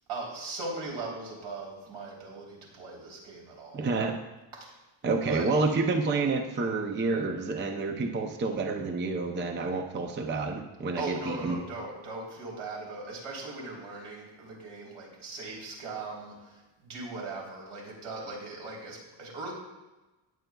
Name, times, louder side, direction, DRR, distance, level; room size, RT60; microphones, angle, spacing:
voice 1, 0.1-3.9 4.5-4.7 5.3-5.5 11.0-19.5, right 3 dB, 75° right, -2 dB, 3.6 m, -39 dB
voice 2, 3.7-4.2 5.0-11.6, right 3 dB, 25° right, 4 dB, 0.5 m, -29 dB
18.0 x 7.8 x 2.3 m, 1.1 s
wide cardioid pair, 180°, 50 cm